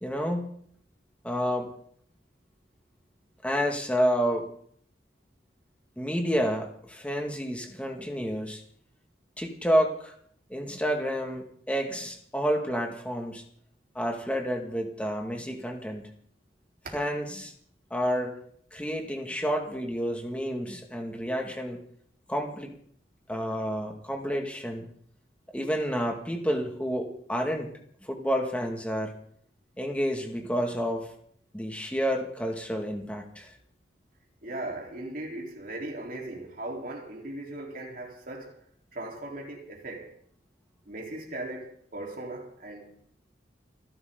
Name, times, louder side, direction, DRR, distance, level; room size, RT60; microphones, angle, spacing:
voice 1, 0.0-0.5 1.2-1.7 3.4-4.5 6.0-8.6 9.4-10.1 10.5-13.4 13.9-16.1 16.9-17.5 17.9-18.4 18.7-21.8 22.3-22.7 23.3-24.9 25.5-27.7 28.0-29.1 29.8-31.1 31.5-33.5, equal, 5° left, 2.4 m, -29 dB
voice 2, 34.4-38.6 38.9-40.1 40.9-42.9, right 1 dB, 50° right, 4.3 m, -38 dB
30.0 x 11.5 x 4.1 m
head